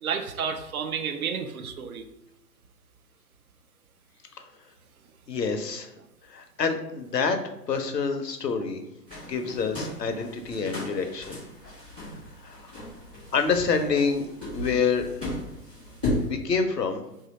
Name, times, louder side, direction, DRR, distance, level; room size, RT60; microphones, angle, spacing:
voice 1, 0.0-2.1, right 6 dB, 60° right, 7 dB, 0.5 m, -31 dB
voice 2, 5.3-5.9 6.3-8.8 9.2-11.4 12.4-12.7 13.3-14.3 14.5-15.1 16.3-17.0, left 5 dB, 80° left, 6 dB, 0.7 m, -27 dB
sound 1, 9.1-16.3, left 1 dB, 5° right, 0.4 m, -35 dB
2.9 x 2.7 x 3.9 m, 0.86 s
figure-of-eight pair, 120°, 48 cm